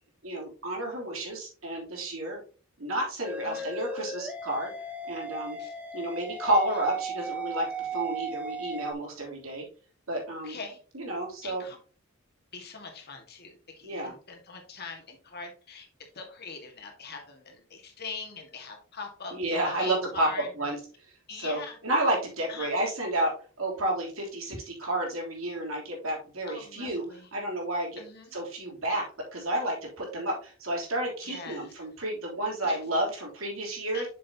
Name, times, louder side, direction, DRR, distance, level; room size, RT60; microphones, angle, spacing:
voice 1, 0.2-2.4 2.8-4.7 5.1-5.6 5.9-9.6 10.1-10.6 10.9-11.6 13.8-14.1 19.3-20.3 20.6-20.8 21.3-23.3 23.6-27.0 27.3-28.0 28.3-29.0 29.3-34.0, right 1 dB, 90° right, -1 dB, 3.2 m, -31 dB
sound 1, 3.2-8.9, right 2 dB, 5° right, 1.1 m, -36 dB
voice 2, 10.4-10.8 11.4-11.8 12.5-15.9 16.1-20.5 21.3-21.8 22.5-22.8 26.5-27.3 28.0-28.4 31.2-31.7 32.6-32.8 33.9-34.0, left 4 dB, 50° left, 2 dB, 1.9 m, -42 dB
7.5 x 6.7 x 2.9 m, 0.39 s
head